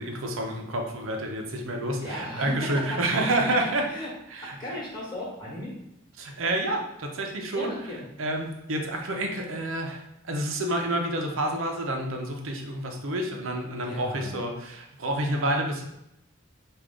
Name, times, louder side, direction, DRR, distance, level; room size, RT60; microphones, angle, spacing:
voice 1, 0.0-3.9 4.3-4.5 6.2-7.7 8.2-15.8, right 1 dB, 75° right, 2 dB, 0.7 m, -29 dB
voice 2, 2.0-3.1 3.6-4.1 4.4-5.7 7.5-8.1 13.8-14.3, left 1 dB, 20° left, -4 dB, 1.3 m, -36 dB
4.8 x 2.5 x 3.8 m, 0.83 s
head